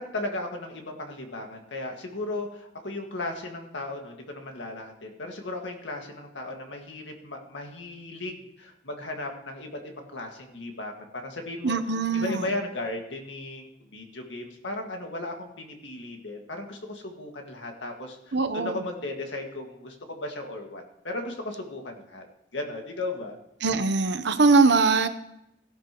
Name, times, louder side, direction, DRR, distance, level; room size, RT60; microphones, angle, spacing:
voice 1, 0.0-11.8 12.1-22.2 22.5-23.4, left 2 dB, 80° left, 1.9 m, -36 dB
voice 2, 11.6-12.5 18.3-18.8 23.6-25.1, right 3 dB, 65° right, 0.8 m, -22 dB
16.5 x 11.0 x 3.1 m
head